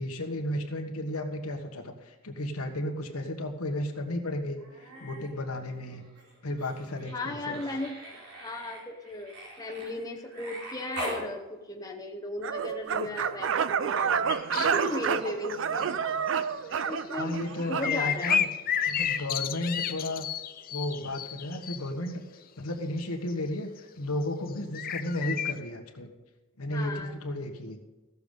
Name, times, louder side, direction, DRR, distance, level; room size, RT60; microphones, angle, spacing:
voice 1, 0.0-6.1 6.4-7.6 17.2-18.5 18.9-20.3 20.7-22.2 22.6-26.1 26.6-27.8, left 1 dB, 85° left, 3 dB, 1.4 m, -33 dB
Human voice, 4.6-5.3 5.6-11.3 12.8-12.9, right 1 dB, 85° right, 3.4 m, -42 dB
voice 2, 7.1-14.2 14.5-15.9 16.8-17.3 17.7-18.5 26.7-27.1, left 2 dB, 15° left, 0 dB, 0.8 m, -36 dB
sound 1, 12.4-18.5, right 7 dB, 60° right, 0.4 m, -29 dB
sound 2, 14.3-15.1 15.5-15.8 16.4-16.5 17.3-21.8 22.1-22.2 23.3-23.4 24.5-24.6 24.7-25.5, left 8 dB, 40° left, 0.5 m, -31 dB
15.5 x 7.0 x 5.3 m, 1.1 s
head